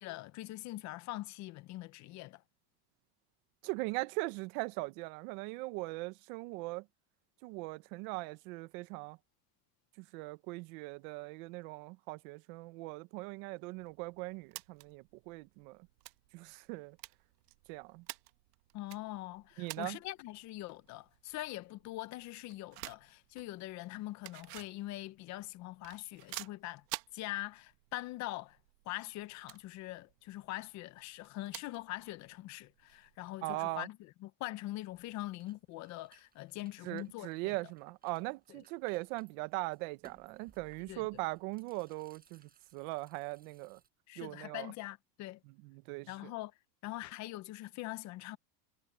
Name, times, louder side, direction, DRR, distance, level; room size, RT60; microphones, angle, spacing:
voice 1, 0.0-2.4 18.7-26.8 27.1-28.6 28.9-37.6 38.5-38.6 40.9-41.1 44.1-45.4 46.1-46.5 46.8-48.4, left 17 dB, 35° left, 0.7 m, -43 dB
voice 2, 3.6-6.8 7.4-9.2 10.0-15.8 16.3-17.0 17.7-18.0 19.6-20.0 33.4-33.9 36.8-43.8 44.2-44.7 45.5-46.3, right 24 dB, 55° right, 1.1 m, -40 dB
sound 1, 13.7-33.3, right 21 dB, 85° right, 1.2 m, -52 dB
sound 2, 34.9-43.9, right 6 dB, 20° right, 4.6 m, -66 dB
supercardioid pair, 155°, 48 cm